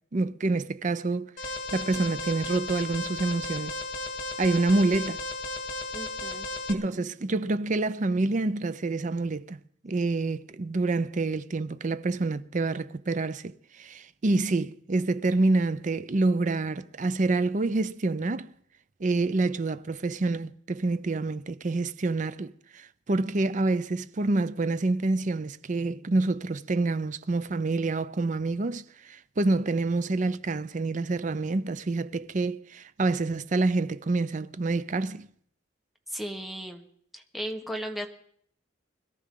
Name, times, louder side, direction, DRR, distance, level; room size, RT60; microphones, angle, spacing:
voice 1, 0.1-1.3 1.7-3.8 4.4-5.2 6.7-9.6 9.8-18.5 19.0-35.3, right 3 dB, 40° right, 0.5 m, -27 dB
Alarm, 1.4-6.7, left 2 dB, 50° left, 2.2 m, -35 dB
voice 2, 5.9-6.5 36.1-36.9 37.1-38.1, equal, ahead, 1.2 m, -35 dB
21.5 x 14.0 x 3.8 m
head